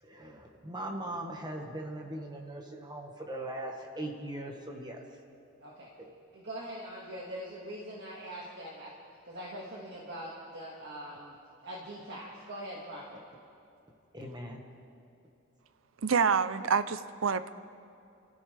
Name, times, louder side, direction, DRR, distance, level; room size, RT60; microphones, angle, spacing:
voice 1, 0.0-5.0 6.0-6.1 14.1-14.6, right 1 dB, 20° right, 2 dB, 1.6 m, -40 dB
voice 2, 5.6-5.9 6.3-8.9 9.2-11.4 11.6-13.2, right 1 dB, 60° right, -4 dB, 2.0 m, -42 dB
voice 3, 16.0-17.5, right 6 dB, 80° right, 13 dB, 0.6 m, -27 dB
29.0 x 14.0 x 3.4 m, 2.7 s
head